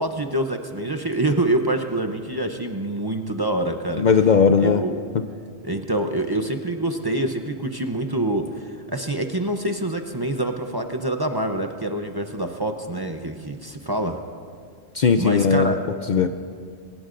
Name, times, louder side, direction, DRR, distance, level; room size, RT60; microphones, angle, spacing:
voice 1, 0.0-4.0 4.6-5.0 5.6-14.2 15.2-15.8, right 1 dB, 25° right, 5 dB, 0.7 m, -26 dB
voice 2, 4.0-4.8 14.9-15.8 16.1-16.3, left 6 dB, 55° left, 8 dB, 0.6 m, -17 dB
23.0 x 19.0 x 2.6 m, 2.1 s
omnidirectional pair, 1.1 m